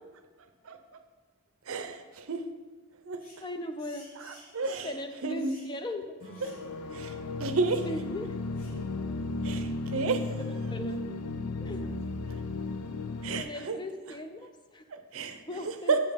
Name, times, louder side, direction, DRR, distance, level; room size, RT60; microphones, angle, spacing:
voice 1, 1.7-2.5 3.0-3.2 4.2-4.9 5.2-5.5 6.4-6.5 6.9-7.9 9.4-10.3 12.3-12.4 13.2-13.8 14.9-16.0, right 4 dB, 65° right, 8 dB, 0.6 m, -32 dB
sound 1, 3.2-3.5 3.8-5.0 5.4-5.7 6.3-6.6 6.9-7.0 7.6-7.9 8.5-8.8 9.4-9.7, left 1 dB, 40° left, 1.6 m, -55 dB
voice 2, 3.4-4.1 4.8-6.1 7.8-8.4 10.7-11.0 11.4-12.0 13.4-14.9 15.5-16.0, left 1 dB, 20° left, 7 dB, 0.4 m, -38 dB
Acoustic guitar / Strum, 6.2-9.5, equal, 60° left, 1.8 m, -55 dB
sound 2, 6.4-13.4, left 3 dB, 90° left, 0.5 m, -35 dB
8.1 x 5.3 x 5.1 m, 1.4 s
head